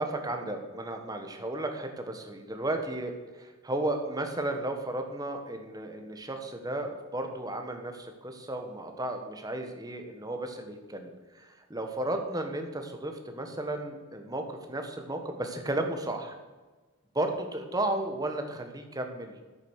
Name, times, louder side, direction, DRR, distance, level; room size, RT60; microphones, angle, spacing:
voice 1, 0.0-16.4 17.1-19.5, right 1 dB, 15° right, 5 dB, 1.2 m, -34 dB
10.0 x 8.6 x 6.5 m, 1.3 s
head